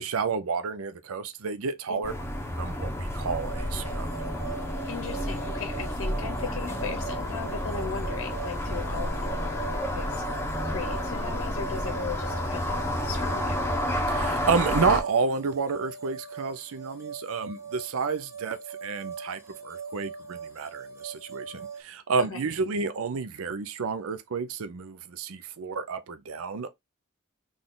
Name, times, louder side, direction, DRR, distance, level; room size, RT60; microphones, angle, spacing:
voice 1, 0.0-2.1 2.6-4.1 14.1-26.7, right 5 dB, 70° right, 0.5 m, -30 dB
sound 1, 2.0-15.0, left 1 dB, 10° left, 1.0 m, -30 dB
sound 2, 3.2-21.8, right 5 dB, 15° right, 1.4 m, -42 dB
voice 2, 4.8-10.2 10.6-13.7 22.2-22.4, left 5 dB, 65° left, 0.8 m, -37 dB
4.0 x 3.3 x 3.8 m
head